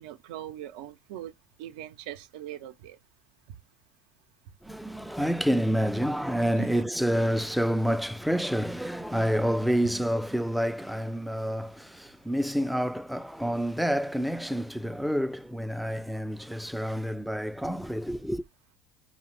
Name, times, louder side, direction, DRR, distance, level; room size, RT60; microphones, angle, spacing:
voice 1, 0.0-1.3 1.6-3.0 6.6-6.9, right 12 dB, 70° right, 0.4 m, -41 dB
voice 2, 4.6-18.4, equal, ahead, 0.3 m, -28 dB
4.8 x 2.1 x 3.0 m
hypercardioid pair, 75°, 4 cm